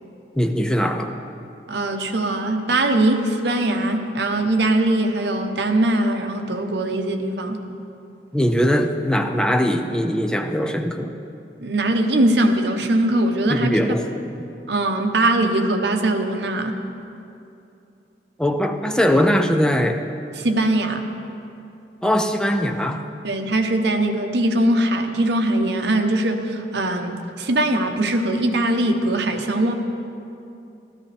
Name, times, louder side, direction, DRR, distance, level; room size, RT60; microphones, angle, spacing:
voice 1, 0.3-1.1 8.3-11.1 13.5-14.3 18.4-20.0 22.0-23.1, equal, 5° left, 5 dB, 0.5 m, -21 dB
voice 2, 1.7-7.7 11.6-13.7 14.7-16.8 20.4-21.1 23.2-29.8, right 1 dB, 70° right, 5 dB, 0.9 m, -21 dB
13.5 x 13.0 x 3.4 m, 2.7 s
head